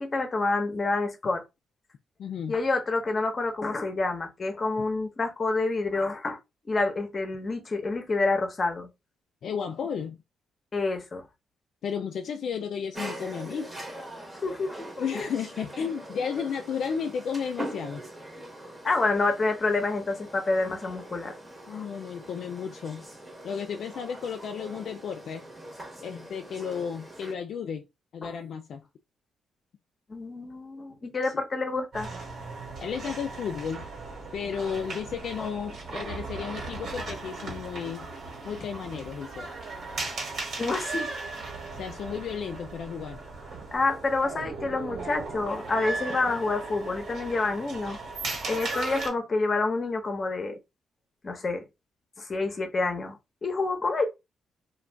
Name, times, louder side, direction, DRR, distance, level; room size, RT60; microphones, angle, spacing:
voice 1, 0.0-1.4 2.5-6.4 6.7-8.9 10.7-11.2 14.4-15.0 18.8-21.4 21.7-21.9 28.2-28.4 30.1-32.1 35.4-35.5 40.6-41.1 43.7-48.0 48.5-50.6 51.2-51.6 52.2-54.1, left 3 dB, 35° left, 0.8 m, -28 dB
voice 2, 2.2-2.6 4.8-4.9 9.4-10.2 11.8-13.7 15.0-18.0 21.7-23.0 23.4-25.4 26.0-27.9 28.1-28.8 31.2-31.3 32.8-33.8 34.3-38.1 38.4-39.5 41.7-43.2, left 7 dB, 65° left, 0.3 m, -33 dB
sound 1, 12.9-27.3, right 1 dB, 15° right, 0.9 m, -42 dB
sound 2, 31.9-49.1, right 3 dB, 65° right, 1.3 m, -37 dB
2.5 x 2.3 x 3.3 m
cardioid pair, 90°, 0 cm